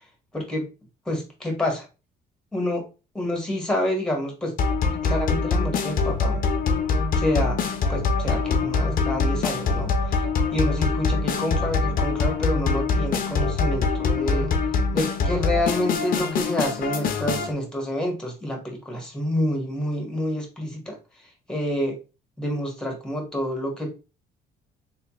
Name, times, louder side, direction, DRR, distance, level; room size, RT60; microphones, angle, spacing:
voice 1, 0.3-0.7 1.0-1.8 2.5-2.9 3.1-6.4 7.2-10.2 10.5-14.5 14.9-22.0 22.4-23.9, left 1 dB, 5° left, 0 dB, 1.7 m, -28 dB
sound 1, 4.6-17.5, left 4 dB, 55° left, 0.8 m, -24 dB
3.3 x 3.3 x 3.1 m, 0.30 s
cardioid pair, 110°, 17 cm